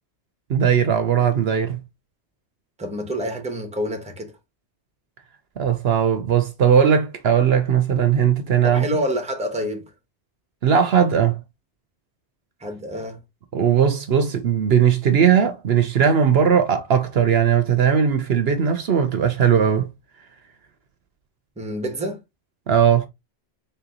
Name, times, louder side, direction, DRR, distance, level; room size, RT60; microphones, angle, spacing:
voice 1, 0.5-1.8 5.6-8.8 10.6-11.4 13.5-19.9 22.7-23.1, right 8 dB, 65° right, 0.9 m, -18 dB
voice 2, 2.8-4.3 8.6-9.9 12.6-13.2 21.6-22.2, equal, 5° right, 0.9 m, -27 dB
4.1 x 3.9 x 2.8 m
omnidirectional pair, 1.2 m